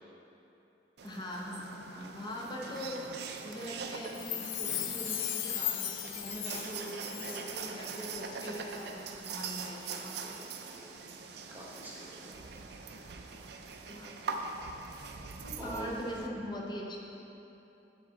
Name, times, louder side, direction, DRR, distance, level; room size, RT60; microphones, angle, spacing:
voice 1, 1.0-10.5 13.9-14.1 15.4-17.0, equal, 25° left, -2 dB, 0.7 m, -42 dB
sound 1, 1.0-16.3, right 5 dB, 60° right, 0.4 m, -43 dB
Chime, 4.0-7.7 8.0-8.1, left 12 dB, 85° left, 0.4 m, -37 dB
voice 2, 10.1-10.9 11.5-12.4 12.8-13.1 15.6-15.9, right 1 dB, 10° right, -5 dB, 0.8 m, -47 dB
9.1 x 3.8 x 3.9 m, 2.9 s
head